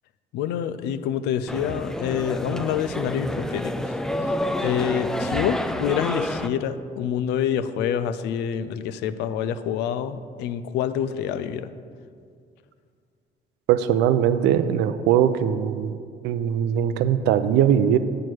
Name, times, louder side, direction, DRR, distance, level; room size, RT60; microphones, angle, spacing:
voice 1, 0.3-3.9 4.2-4.3 4.6-11.7, left 8 dB, 90° left, 13 dB, 0.5 m, -27 dB
sound 1, 1.5-6.5, left 1 dB, 5° left, 0.3 m, -28 dB
voice 2, 13.7-16.0 16.2-18.0, right 9 dB, 90° right, 12 dB, 0.5 m, -20 dB
8.7 x 4.7 x 6.1 m, 2.2 s
cardioid pair, 110°, 17 cm